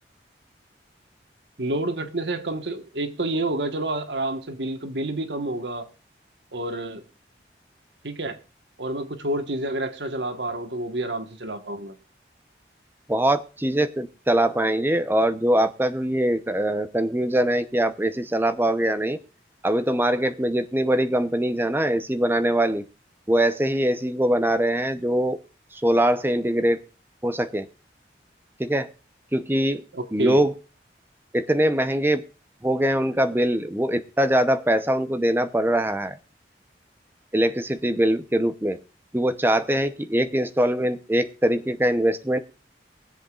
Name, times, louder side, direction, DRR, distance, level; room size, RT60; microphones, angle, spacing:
voice 1, 1.6-5.9 6.5-7.0 8.0-8.4 8.8-11.9 29.9-30.5, right 1 dB, 80° right, 1.4 m, -29 dB
voice 2, 13.1-19.2 19.6-22.8 23.3-25.4 25.8-26.8 27.2-27.7 28.6-28.9 29.3-29.8 30.1-30.5 31.3-32.2 32.6-36.2 37.3-38.8 39.1-42.4, right 1 dB, 10° right, 0.8 m, -22 dB
23.0 x 7.9 x 2.4 m
head